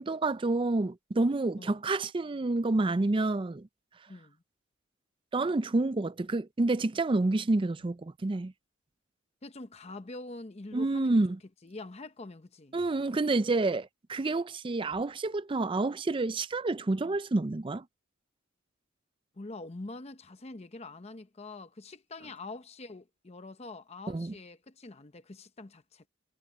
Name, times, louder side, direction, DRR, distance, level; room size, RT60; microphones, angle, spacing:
voice 1, 0.0-3.7 5.3-8.5 10.7-11.4 12.7-17.8 24.1-24.3, right 2 dB, 25° right, 0.4 m, -28 dB
voice 2, 4.1-4.4 9.4-11.2 11.6-12.8 19.3-26.1, left 2 dB, 30° left, 0.7 m, -45 dB
head